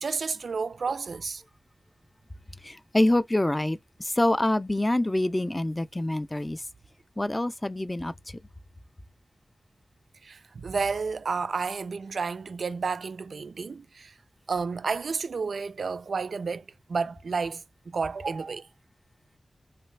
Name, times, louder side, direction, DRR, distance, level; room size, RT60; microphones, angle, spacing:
voice 1, 0.0-1.4 10.2-14.1 14.5-18.7, right 5 dB, 80° right, 0.3 m, -31 dB
voice 2, 2.6-6.6 7.2-8.4, left 1 dB, 20° left, 0.4 m, -26 dB
3.2 x 2.5 x 3.2 m
wide cardioid pair, 65°, 0 cm